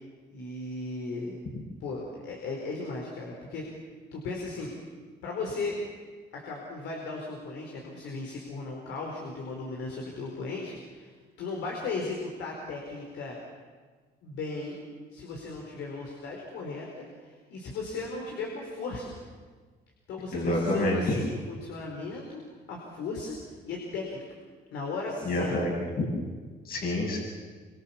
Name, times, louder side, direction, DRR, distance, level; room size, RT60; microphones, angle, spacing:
voice 1, 0.3-1.3 1.8-3.6 4.1-4.7 5.2-5.8 6.3-11.1 11.4-13.4 14.2-14.8 15.1-19.2 20.1-22.4 22.7-23.4 23.7-24.2 24.7-25.5, left 3 dB, 90° left, 0 dB, 4.7 m, -36 dB
voice 2, 20.3-21.2 25.2-25.7 26.7-27.2, left 1 dB, 55° left, 0 dB, 7.2 m, -27 dB
27.0 x 25.5 x 7.2 m, 1.5 s
cardioid pair, 100°, 18 cm